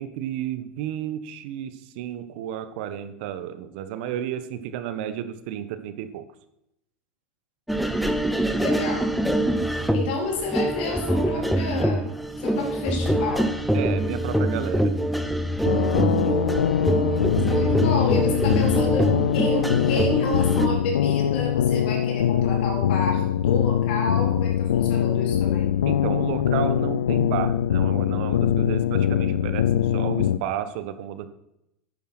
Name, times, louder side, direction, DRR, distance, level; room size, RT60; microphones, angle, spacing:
voice 1, 0.0-6.2 13.7-14.9 25.9-31.3, right 10 dB, 65° right, 11 dB, 1.2 m, -32 dB
sound 1, 7.7-20.7, right 1 dB, ahead, 1.1 m, -24 dB
voice 2, 8.6-9.1 9.9-12.1 12.4-13.5 17.5-25.7, left 3 dB, 70° left, 1 dB, 3.9 m, -30 dB
sound 2, 15.6-30.4, left 10 dB, 85° left, 0.6 m, -23 dB
11.0 x 9.1 x 6.1 m, 0.83 s
hypercardioid pair, 95°, 6 cm